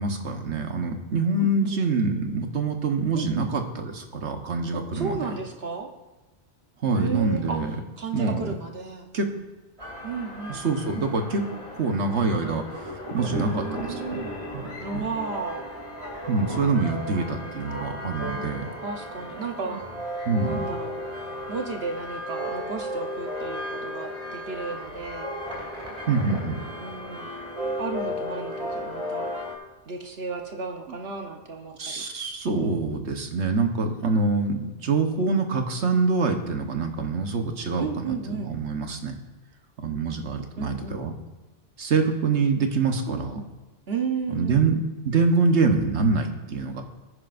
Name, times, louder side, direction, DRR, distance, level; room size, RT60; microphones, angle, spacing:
voice 1, 0.0-5.3 6.8-7.7 8.1-8.5 9.1-9.3 10.5-11.4 11.8-14.2 14.9-15.0 16.3-18.7 19.7-19.8 20.2-20.7 26.1-26.6 31.8-39.2 39.8-41.1 41.8-43.4 44.3-46.8, right 4 dB, 85° right, 5 dB, 1.5 m, -25 dB
voice 2, 1.4-1.8 3.1-3.5 4.7-5.9 6.9-7.6 8.0-9.1 10.0-10.6 13.3-14.4 14.8-15.7 18.8-19.8 20.4-21.1 21.5-25.3 26.8-27.3 27.8-29.3 29.9-32.0 32.6-32.9 37.8-38.5 40.6-41.0 43.1-43.5 43.9-44.7, right 5 dB, 65° right, 3 dB, 1.2 m, -33 dB
sound 1, 9.8-29.5, equal, 30° right, 2.8 m, -35 dB
20.5 x 9.9 x 2.6 m, 1.2 s
omnidirectional pair, 1.1 m